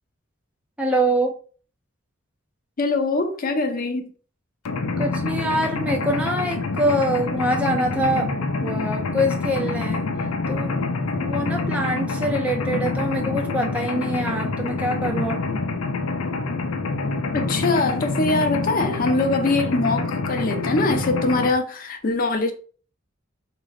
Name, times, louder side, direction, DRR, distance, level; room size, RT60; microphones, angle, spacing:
voice 1, 0.8-1.4 5.0-10.0 10.5-10.9 11.2-15.4, right 1 dB, 5° right, 0.4 m, -24 dB
voice 2, 2.8-4.1 17.3-22.5, left 3 dB, 45° left, 0.6 m, -23 dB
Mechanisms, 4.7-21.5, left 3 dB, 90° left, 0.5 m, -26 dB
3.7 x 2.5 x 3.1 m
head